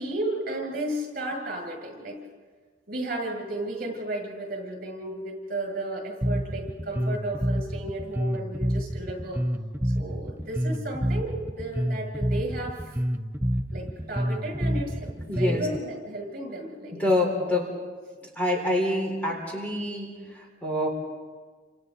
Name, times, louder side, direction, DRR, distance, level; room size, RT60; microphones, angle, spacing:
voice 1, 0.0-2.2 2.9-9.4 9.8-13.0 13.7-17.0, right 1 dB, 50° right, 1 dB, 7.4 m, -33 dB
Bass guitar, 6.2-15.8, equal, 10° right, 0.7 m, -28 dB
voice 2, 15.3-15.6 17.0-17.7 18.2-20.9, left 1 dB, 10° left, -1 dB, 4.1 m, -26 dB
29.5 x 28.0 x 4.1 m, 1.5 s
head